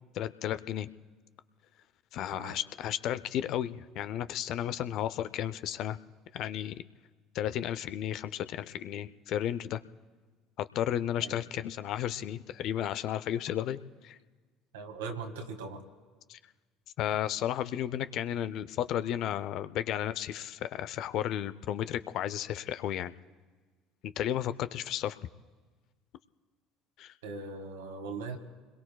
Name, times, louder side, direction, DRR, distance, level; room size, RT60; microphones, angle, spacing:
voice 1, 0.1-0.9 2.1-6.0 6.3-6.8 7.3-9.8 10.6-14.2 16.3-16.4 17.0-23.1 24.0-25.2 27.0-27.1, left 11 dB, 60° left, 13 dB, 0.5 m, -33 dB
voice 2, 14.7-15.8 27.2-28.4, right 4 dB, 80° right, 4 dB, 1.7 m, -40 dB
28.0 x 22.0 x 2.3 m, 1.4 s
hypercardioid pair, 65°, 0 cm